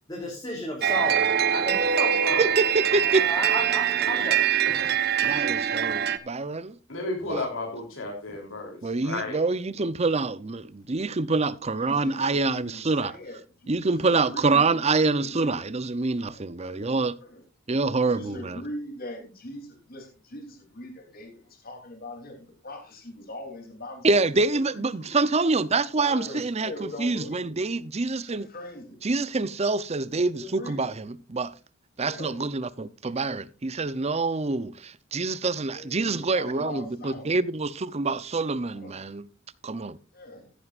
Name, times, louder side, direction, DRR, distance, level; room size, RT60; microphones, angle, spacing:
voice 1, 0.1-2.4 3.1-4.9, left 1 dB, 20° left, 3.2 m, -34 dB
sound 1, 0.8-6.2, right 9 dB, 55° right, 0.9 m, -23 dB
voice 2, 2.4-3.2 5.2-6.7 7.3-7.5 8.8-13.1 13.7-17.2 17.7-18.6 24.0-28.5 29.0-31.5 32.0-39.3 39.6-40.0, right 3 dB, 35° right, 0.7 m, -26 dB
voice 3, 6.9-9.4, left 2 dB, 75° left, 3.4 m, -33 dB
voice 4, 11.7-15.6 16.3-16.9 17.2-17.4 17.9-24.1 24.5-25.1 26.0-27.5 28.3-29.0 30.3-30.9 32.0-32.3 35.7-37.4 38.6-39.1 40.1-40.4, left 1 dB, 50° left, 3.3 m, -41 dB
15.0 x 11.0 x 2.5 m
head